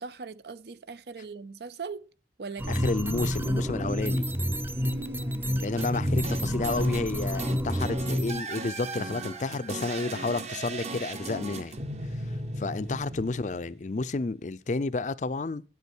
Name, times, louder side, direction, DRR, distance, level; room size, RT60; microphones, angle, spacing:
voice 1, 0.0-2.1 2.4-2.9 3.2-3.3 4.8-5.7, right 4 dB, 65° right, 0.6 m, -40 dB
sound 1, 2.6-8.4, equal, 10° right, 0.5 m, -29 dB
voice 2, 2.7-4.3 5.6-11.8 12.6-15.6, left 3 dB, 45° left, 0.5 m, -31 dB
sound 2, 5.8-14.0, right 2 dB, 40° right, 1.0 m, -37 dB
9.2 x 8.3 x 6.1 m
head